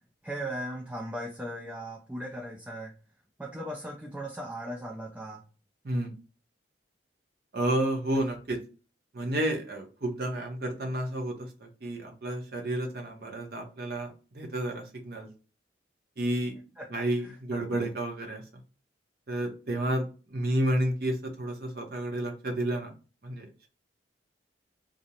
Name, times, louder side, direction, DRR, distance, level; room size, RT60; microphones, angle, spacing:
voice 1, 0.2-2.9 3.4-5.4 16.8-17.1 17.5-17.6, right 1 dB, 5° right, -1 dB, 0.3 m, -37 dB
voice 2, 7.5-8.6 9.1-15.3 16.2-16.5 16.9-18.4 19.3-22.9 23.2-23.7, right 1 dB, 50° right, 2 dB, 0.7 m, -31 dB
2.4 x 2.0 x 2.7 m, 0.35 s
head